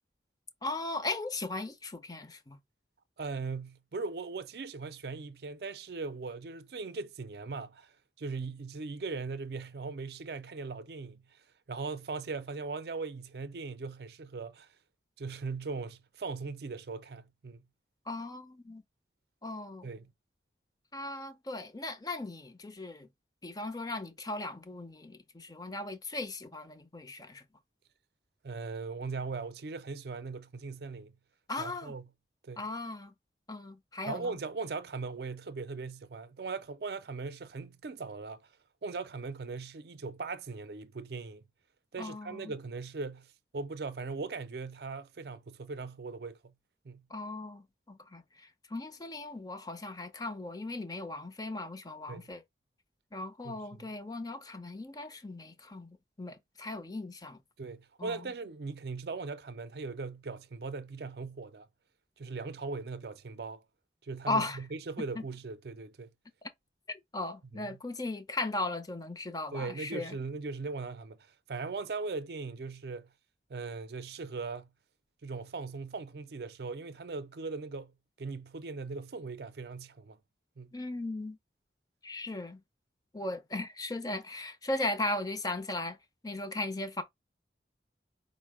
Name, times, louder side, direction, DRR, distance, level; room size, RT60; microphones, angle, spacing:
voice 1, 0.6-2.6 18.1-18.8 19.4-19.9 20.9-23.1 23.4-27.4 31.5-31.9 32.6-33.1 33.5-34.4 42.0-42.5 47.1-52.4 53.1-55.9 56.2-57.4 58.0-58.2 64.3-64.6 65.2-65.3 66.9-70.2 80.7-81.4 82.0-82.6 83.1-86.0 86.2-87.0, left 2 dB, 20° left, 0.6 m, -37 dB
voice 2, 3.2-11.4 11.7-14.7 15.2-17.6 19.8-20.1 28.4-31.2 31.6-32.1 32.4-32.6 34.1-38.5 38.8-41.5 41.9-46.5 46.8-47.1 52.1-52.3 53.4-53.9 57.6-61.7 62.2-63.6 64.0-66.1 67.5-67.8 69.5-71.2 71.5-73.1 73.5-74.7 75.2-80.2 80.6-80.7, right 4 dB, 60° right, 0.5 m, -39 dB
4.9 x 2.1 x 4.7 m
head